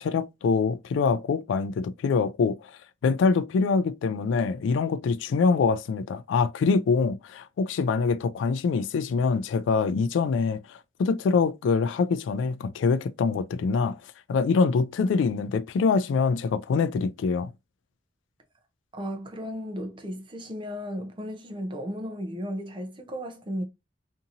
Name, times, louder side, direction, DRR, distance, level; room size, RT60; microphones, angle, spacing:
voice 1, 0.0-14.0 14.3-17.5, left 4 dB, 85° left, 0.3 m, -24 dB
voice 2, 18.9-23.6, equal, 25° right, 0.5 m, -35 dB
2.8 x 2.6 x 2.5 m
head